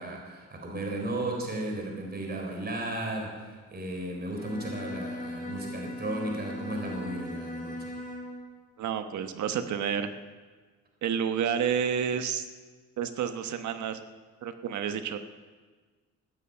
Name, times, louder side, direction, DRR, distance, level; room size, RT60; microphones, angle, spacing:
voice 1, 0.0-8.0, right 1 dB, 30° right, 1 dB, 4.0 m, -35 dB
Bowed string instrument, 4.3-8.5, left 1 dB, 30° left, 2.9 m, -39 dB
voice 2, 8.8-10.1 11.0-12.4 13.0-14.0 14.4-15.2, right 8 dB, 70° right, 8 dB, 1.1 m, -30 dB
14.5 x 9.3 x 8.6 m, 1.4 s
cardioid pair, 90°, 30 cm